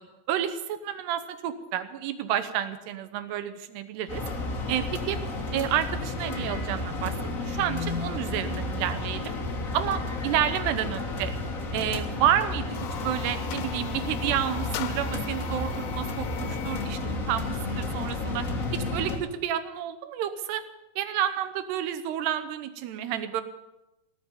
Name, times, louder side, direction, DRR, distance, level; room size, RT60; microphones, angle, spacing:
voice 1, 0.3-4.2 4.7-5.2 5.5-7.1 7.4-9.4 9.7-11.3 11.7-12.8 13.0-18.4 18.7-20.6 21.0-23.4, right 10 dB, 85° right, 11 dB, 3.1 m, -30 dB
sound 1, 4.1-19.2, left 2 dB, 55° left, 0.9 m, -32 dB
sound 2, 12.6-17.0, left 11 dB, 75° left, 2.5 m, -40 dB
18.5 x 7.2 x 9.5 m, 0.97 s
omnidirectional pair, 4.7 m